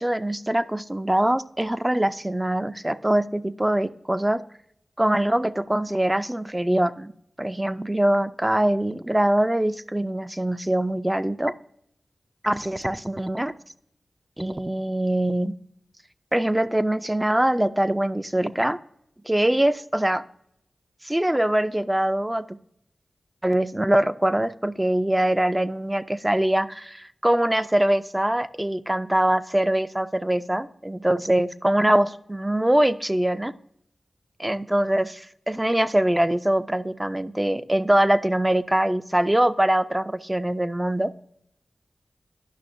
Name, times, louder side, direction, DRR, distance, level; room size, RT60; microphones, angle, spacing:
voice 1, 0.0-4.4 5.0-7.1 7.4-11.5 12.4-13.5 14.4-15.6 16.3-18.8 19.2-20.2 21.0-22.6 23.4-33.5 34.4-41.1, right 1 dB, 15° right, 12 dB, 0.4 m, -23 dB
11.0 x 5.6 x 2.6 m, 0.74 s
cardioid pair, 55°, 0 cm